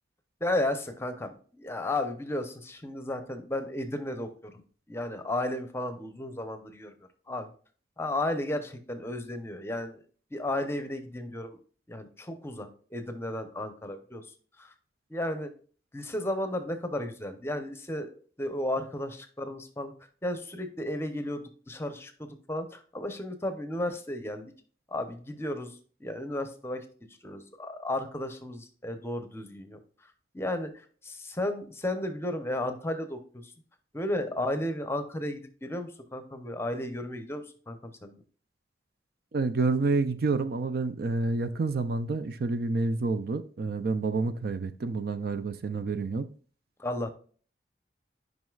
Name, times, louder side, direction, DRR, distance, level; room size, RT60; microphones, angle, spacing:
voice 1, 0.4-4.6 4.9-6.9 7.3-7.5 8.0-10.0 10.3-11.6 11.9-14.3 14.6-14.7 15.1-15.5 15.9-19.9 20.2-24.5 24.9-26.9 27.2-29.8 30.3-33.5 33.9-38.2 46.8-47.1, left 1 dB, 15° left, 0.7 m, -34 dB
voice 2, 39.3-46.3, right 3 dB, 55° right, 0.4 m, -28 dB
9.3 x 5.3 x 2.4 m
head